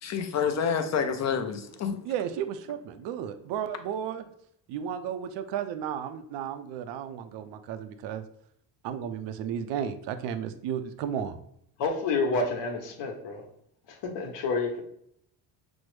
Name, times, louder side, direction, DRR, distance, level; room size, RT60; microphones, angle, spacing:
voice 1, 0.0-2.0, left 6 dB, 35° left, 7 dB, 0.6 m, -28 dB
voice 2, 2.0-4.2 4.7-8.2 8.8-11.4, right 8 dB, 65° right, 9 dB, 0.5 m, -33 dB
voice 3, 11.8-13.4 13.9-14.8, left 3 dB, 65° left, 2 dB, 1.0 m, -29 dB
6.1 x 2.1 x 3.1 m, 0.71 s
cardioid pair, 120°, 45 cm